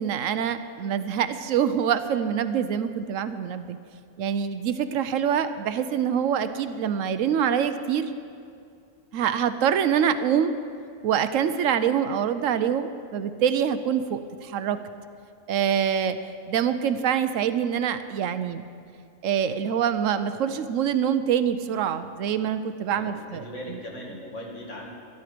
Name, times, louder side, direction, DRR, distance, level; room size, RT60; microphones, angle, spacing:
voice 1, 0.0-3.8 4.2-8.1 9.1-10.6 11.0-14.8 15.5-16.2 16.5-18.6 19.2-23.4 23.7-23.8, right 8 dB, 80° right, 11 dB, 1.0 m, -25 dB
voice 2, 22.9-24.9, equal, 65° left, -2 dB, 2.5 m, -39 dB
12.0 x 12.0 x 5.0 m, 2.4 s
omnidirectional pair, 1.4 m